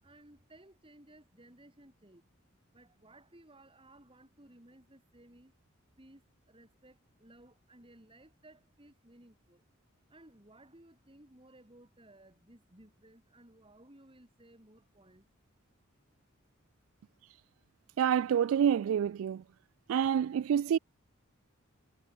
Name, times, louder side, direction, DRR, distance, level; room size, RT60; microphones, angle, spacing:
voice 1, 0.0-2.4 2.7-5.6 6.0-9.6 10.1-15.3, right 1 dB, 25° right, 4.6 m, -59 dB
voice 2, 18.0-19.4 19.9-20.8, right 8 dB, 80° right, 0.3 m, -27 dB
head